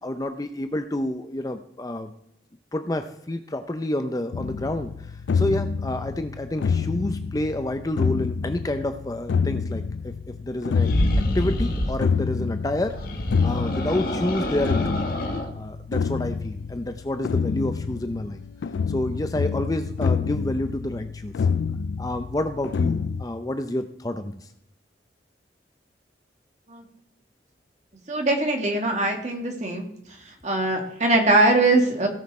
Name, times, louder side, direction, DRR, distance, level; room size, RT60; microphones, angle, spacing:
voice 1, 0.0-2.1 2.7-10.9 11.3-13.0 13.4-15.2 15.5-18.4 18.9-21.5 22.0-24.5, left 1 dB, 20° left, 8 dB, 0.5 m, -29 dB
sound 1, 4.3-23.2, left 5 dB, 75° left, 0.3 m, -27 dB
sound 2, 10.7-12.0 12.9-15.5, left 1 dB, 50° left, 1.6 m, -26 dB
voice 2, 28.1-29.9 30.3-32.1, right 2 dB, 40° right, 3 dB, 2.0 m, -21 dB
17.0 x 6.2 x 4.3 m, 0.77 s
head